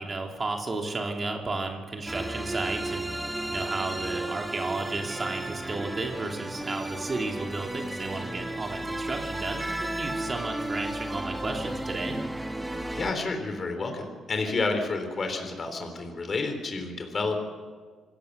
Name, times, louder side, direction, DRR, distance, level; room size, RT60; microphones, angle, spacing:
voice 1, 0.0-3.1 3.5-12.2, right 3 dB, 30° right, 2 dB, 2.8 m, -33 dB
sound 1, 2.1-13.1, right 1 dB, 10° right, 1.6 m, -34 dB
voice 2, 12.9-17.4, left 3 dB, 40° left, 5 dB, 3.6 m, -30 dB
27.0 x 16.5 x 6.7 m, 1.5 s
cardioid pair, 90°, 0 cm